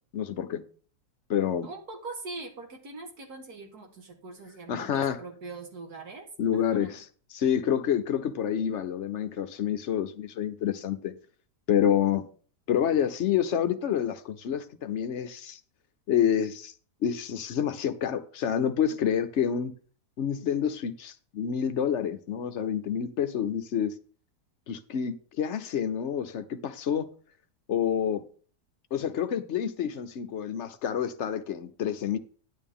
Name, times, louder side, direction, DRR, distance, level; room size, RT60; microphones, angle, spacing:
voice 1, 0.1-0.6 1.3-1.7 4.7-5.2 6.4-7.1 7.3-11.1 11.7-12.2 12.7-15.6 16.1-16.7 17.0-19.7 20.2-23.9 24.7-27.1 27.7-28.2 28.9-32.2, left 9 dB, 60° left, 0.8 m, -28 dB
voice 2, 1.6-6.3 6.5-7.0 19.0-19.2, right 3 dB, 65° right, 2.2 m, -42 dB
9.9 x 8.9 x 3.6 m
omnidirectional pair, 1.7 m